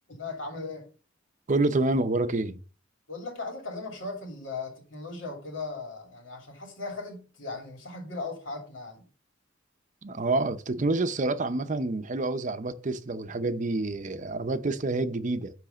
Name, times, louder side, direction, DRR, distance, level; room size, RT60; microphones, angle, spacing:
voice 1, 0.1-0.9 3.1-9.0, left 3 dB, 80° left, 2.8 m, -38 dB
voice 2, 1.5-2.6 10.0-15.5, right 2 dB, 40° right, 0.7 m, -28 dB
9.9 x 3.3 x 6.8 m
head